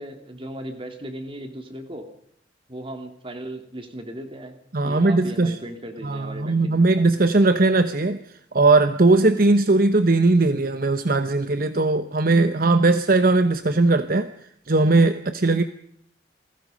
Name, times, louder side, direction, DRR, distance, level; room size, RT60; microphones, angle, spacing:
voice 1, 0.0-2.1 2.7-4.6 4.8-6.9, right 1 dB, 30° right, 5 dB, 3.1 m, -37 dB
voice 2, 4.7-5.6 6.0-8.2 8.5-14.3 14.7-15.6, right 2 dB, 50° right, 10 dB, 1.0 m, -19 dB
28.5 x 20.5 x 5.3 m, 0.71 s
head